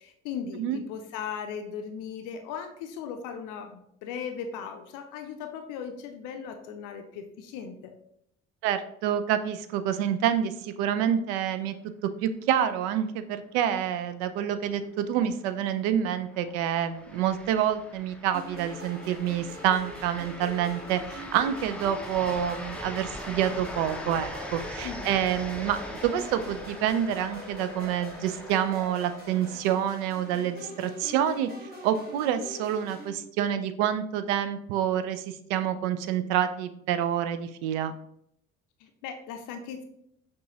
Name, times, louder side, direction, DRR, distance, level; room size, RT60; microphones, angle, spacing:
voice 1, 0.0-7.8 24.8-25.1 38.8-39.8, left 7 dB, 55° left, 6 dB, 0.5 m, -38 dB
voice 2, 8.6-11.8 12.2-31.5 31.8-37.9, right 9 dB, 60° right, 10 dB, 0.5 m, -27 dB
sound 1, 14.7-29.6, left 1 dB, 5° left, 0.5 m, -42 dB
sound 2, 18.3-33.1, equal, 25° right, 1.3 m, -44 dB
6.0 x 2.4 x 2.9 m, 0.74 s
figure-of-eight pair, 45°, 39 cm